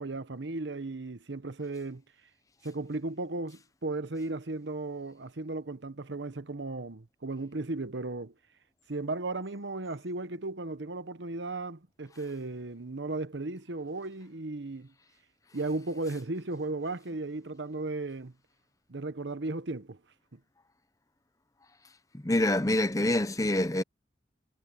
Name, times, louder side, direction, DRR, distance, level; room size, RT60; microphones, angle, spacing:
voice 1, 0.0-2.0 2.6-8.3 8.9-14.9 15.5-18.3 18.9-20.0 20.3-20.4, right 2 dB, 80° right, 1.1 m, -35 dB
voice 2, 22.1-23.8, left 1 dB, 20° left, 0.7 m, -26 dB
head